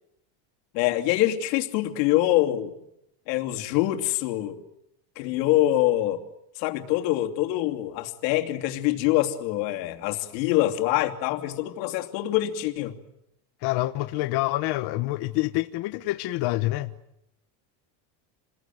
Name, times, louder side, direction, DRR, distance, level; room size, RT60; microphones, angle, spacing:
voice 1, 0.7-2.7 3.3-4.6 5.2-6.2 6.6-12.9, left 15 dB, 90° left, 3.0 m, -25 dB
voice 2, 13.6-16.9, left 18 dB, 50° left, 1.2 m, -27 dB
29.0 x 21.5 x 9.2 m
cardioid pair, 155°, 49 cm